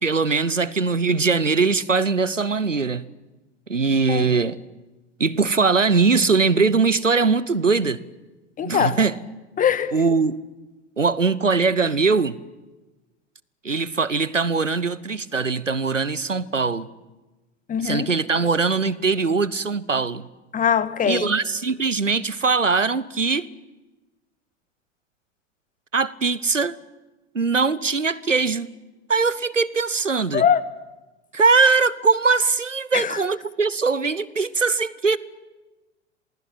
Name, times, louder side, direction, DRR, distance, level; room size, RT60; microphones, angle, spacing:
voice 1, 0.0-3.0 3.7-4.6 5.2-8.0 8.6-9.2 9.9-10.4 11.0-12.4 13.6-16.9 17.8-20.3 21.0-23.5 25.9-26.8 27.3-28.7 29.1-30.4 31.3-35.2, right 4 dB, 90° right, 19 dB, 1.0 m, -21 dB
voice 2, 8.6-9.0 9.6-9.9 17.7-18.1 20.5-21.3 30.3-30.6 32.9-33.2, left 8 dB, 20° left, 15 dB, 1.6 m, -21 dB
27.5 x 20.5 x 8.9 m, 1.1 s
figure-of-eight pair, 90°, 37 cm